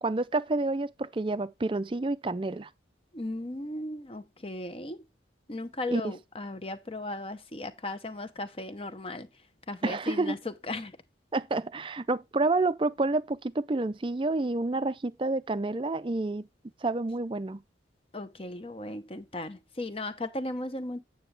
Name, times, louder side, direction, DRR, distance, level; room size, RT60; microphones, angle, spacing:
voice 1, 0.0-2.7 5.9-6.1 9.8-10.4 11.3-16.5 16.8-17.6, right 2 dB, 25° right, 0.4 m, -29 dB
voice 2, 3.1-5.0 5.5-9.3 9.7-10.9 18.1-21.0, left 2 dB, 30° left, 0.8 m, -36 dB
9.1 x 6.9 x 3.3 m
head